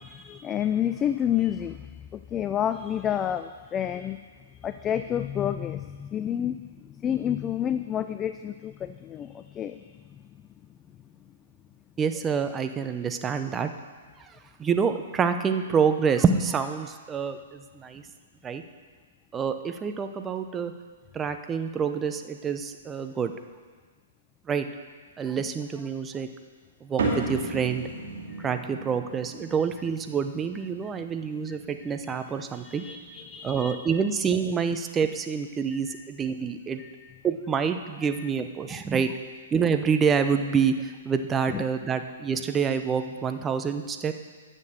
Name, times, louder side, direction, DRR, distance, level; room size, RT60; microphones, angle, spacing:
voice 1, 0.0-4.2 4.6-10.0 28.3-28.5 31.5-31.9 32.5-33.8 35.7-36.1 36.8-37.2 38.1-38.3 38.7-38.8 41.5-41.6, left 10 dB, 20° left, 10 dB, 0.3 m, -30 dB
voice 2, 12.0-13.7 14.6-18.0 18.4-18.6 19.3-20.7 21.1-23.3 24.5-24.7 25.2-26.3 26.8-27.9 28.4-32.8 33.4-36.8 37.2-39.1 39.5-44.1, right 6 dB, 15° right, 8 dB, 0.7 m, -27 dB
sound 1, 27.0-33.7, right 3 dB, 60° right, 2.6 m, -36 dB
10.5 x 6.7 x 6.7 m, 1.5 s
figure-of-eight pair, 115°, 0 cm